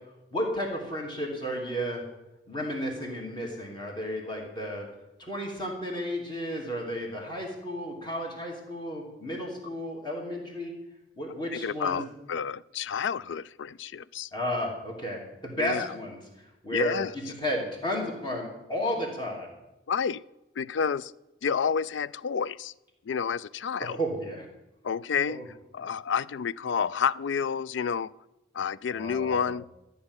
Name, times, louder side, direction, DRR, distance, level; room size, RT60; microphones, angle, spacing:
voice 1, 0.3-2.0 2.5-4.9 5.2-10.7 11.2-12.0 14.3-16.2 16.6-19.5 23.8-24.5 25.3-25.5 28.9-29.6, equal, 25° left, 0 dB, 2.9 m, -33 dB
voice 2, 11.5-14.3 15.6-16.0 16.7-17.1 19.9-20.2 20.6-21.1 21.4-22.7 23.1-24.0 24.8-25.4 25.7-28.1 28.5-29.7, left 6 dB, 75° left, 19 dB, 0.4 m, -29 dB
14.0 x 5.8 x 9.7 m, 0.96 s
head